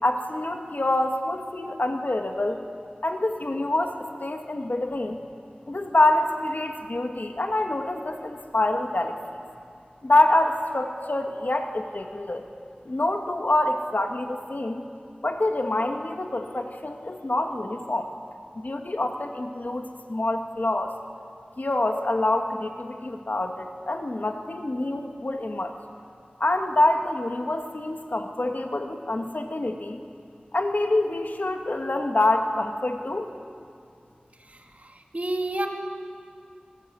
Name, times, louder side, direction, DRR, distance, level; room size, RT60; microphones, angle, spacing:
voice 1, 0.0-2.6 3.0-5.2 5.7-9.4 10.0-12.5 12.9-14.8 15.2-18.1 18.6-21.0 21.6-25.8 26.4-30.0 30.5-33.3, left 2 dB, 70° left, 4 dB, 2.2 m, -26 dB
voice 2, 34.5-35.7, right 1 dB, 55° right, 2 dB, 2.8 m, -30 dB
27.0 x 20.5 x 9.6 m, 2.4 s
wide cardioid pair, 50°, 3 cm